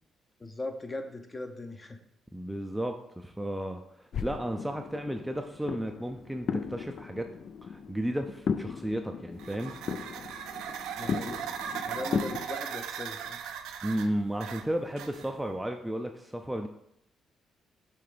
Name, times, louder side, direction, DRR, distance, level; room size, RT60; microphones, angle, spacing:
voice 1, 0.4-2.0 11.0-11.5 11.9-13.4, left 2 dB, 25° left, 6 dB, 0.8 m, -39 dB
voice 2, 2.3-7.3 7.6-9.7 13.8-16.7, right 1 dB, 5° right, 4 dB, 0.4 m, -33 dB
sound 1, 4.1-12.5, left 6 dB, 60° left, 0.4 m, -36 dB
sound 2, 9.3-15.5, right 8 dB, 85° right, 0.4 m, -38 dB
5.6 x 3.4 x 5.0 m, 0.76 s
cardioid pair, 90°, 0 cm